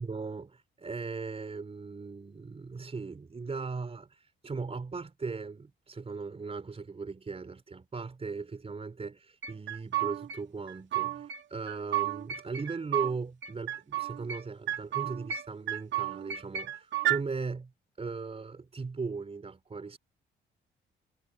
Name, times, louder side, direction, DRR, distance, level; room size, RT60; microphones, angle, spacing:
voice 1, 0.0-17.7 18.0-20.0, right 4 dB, 30° right, 4.3 m, -38 dB
sound 1, 9.4-10.4 10.7-11.4 11.7-13.1 13.4-14.4 14.7-15.4 15.7-17.2, right 13 dB, 65° right, 2.3 m, -32 dB
cardioid pair, 90°, 20 cm